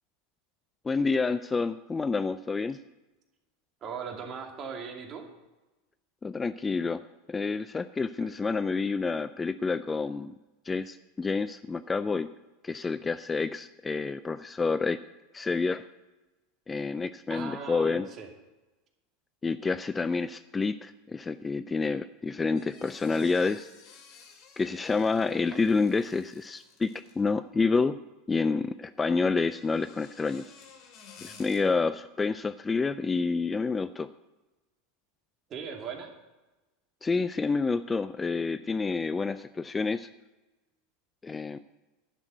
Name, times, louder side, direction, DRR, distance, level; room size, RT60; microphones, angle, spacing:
voice 1, 0.8-2.8 6.2-7.0 7.3-10.3 10.7-12.3 12.6-15.0 15.3-15.8 16.7-18.1 19.4-23.7 24.6-26.9 27.2-28.0 28.3-30.4 31.2-34.1 37.0-40.1 41.2-41.6, left 4 dB, 20° left, 14 dB, 0.4 m, -28 dB
voice 2, 3.8-5.3 8.2-8.3 17.3-18.3 35.5-36.1, right 6 dB, 40° right, 2 dB, 2.4 m, -39 dB
sound 1, 22.6-27.4 29.3-31.6, left 6 dB, 50° left, 2.4 m, -53 dB
11.0 x 6.2 x 9.1 m, 1.1 s
hypercardioid pair, 100°, 0 cm